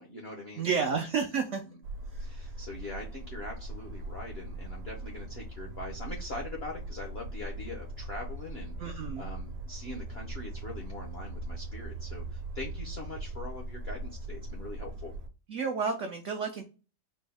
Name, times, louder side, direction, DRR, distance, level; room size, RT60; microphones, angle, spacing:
voice 1, 0.0-1.0 2.2-15.1, left 2 dB, 70° left, 0 dB, 0.6 m, -42 dB
voice 2, 0.6-1.6 2.1-2.3 8.8-9.3 15.5-16.6, right 5 dB, 80° right, 3 dB, 0.6 m, -31 dB
sound 1, 1.8-15.3, right 2 dB, 65° right, 1.0 m, -40 dB
4.3 x 2.0 x 3.3 m, 0.32 s
omnidirectional pair, 1.9 m